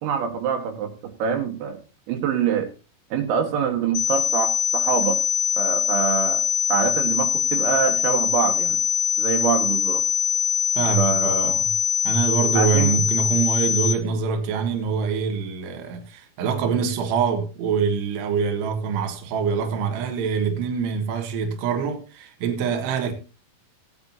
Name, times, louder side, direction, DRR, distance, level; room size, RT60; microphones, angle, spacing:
voice 1, 0.0-0.9 1.2-1.8 2.1-2.7 3.1-5.2 5.6-6.4 6.7-8.8 9.2-10.0 11.0-11.6 12.5-12.9, right 7 dB, 85° right, 4.4 m, -24 dB
sound 1, 3.9-13.9, left 9 dB, 70° left, 2.2 m, -23 dB
voice 2, 10.7-11.7 12.0-23.1, right 6 dB, 65° right, 3.2 m, -24 dB
17.5 x 9.7 x 2.8 m
omnidirectional pair, 5.8 m